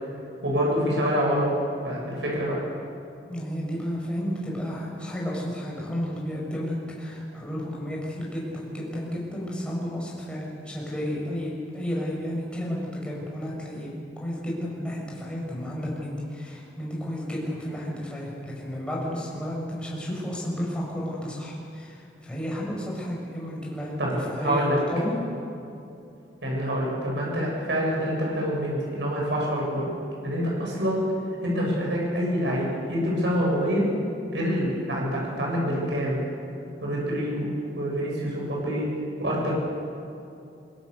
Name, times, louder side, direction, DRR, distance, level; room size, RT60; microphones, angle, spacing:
voice 1, 0.4-1.5 1.8-2.6 24.0-24.8 26.4-29.9 30.2-31.1 31.4-33.9 34.3-36.2 36.8-38.9 39.2-39.6, equal, 75° right, -4 dB, 8.0 m, -26 dB
voice 2, 3.3-13.9 14.2-25.2, equal, 5° left, -4 dB, 6.4 m, -32 dB
24.0 x 21.0 x 6.9 m, 2.7 s
head